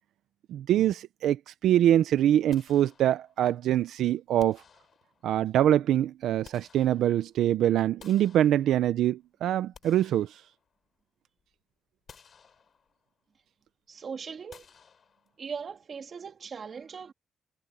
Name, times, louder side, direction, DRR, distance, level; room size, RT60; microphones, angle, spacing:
voice 1, 0.5-4.6 5.2-10.4, right 11 dB, 80° right, 0.6 m, -24 dB
sound 1, 2.5-3.5 4.4-5.4 6.1-7.4 8.0-9.1 9.5-11.0 11.4-11.5 12.1-13.1 14.5-15.6, left 6 dB, 35° left, 5.5 m, -56 dB
voice 2, 13.9-14.7 15.4-17.1, right 6 dB, 35° right, 3.2 m, -39 dB
cardioid pair, 175°, 0 cm